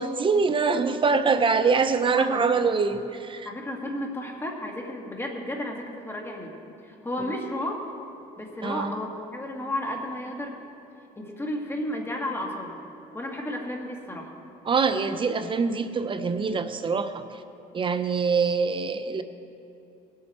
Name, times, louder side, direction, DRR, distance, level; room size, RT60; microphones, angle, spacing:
voice 1, 0.0-3.5 8.6-8.9 14.7-17.2 17.7-19.2, right 5 dB, 30° right, 10 dB, 0.6 m, -24 dB
voice 2, 3.4-6.5 6.8-7.8 8.4-10.6 11.2-12.8 13.1-14.3, left 1 dB, 15° left, 1 dB, 1.7 m, -33 dB
18.0 x 7.7 x 4.3 m, 2.8 s
cardioid pair, 110°, 17 cm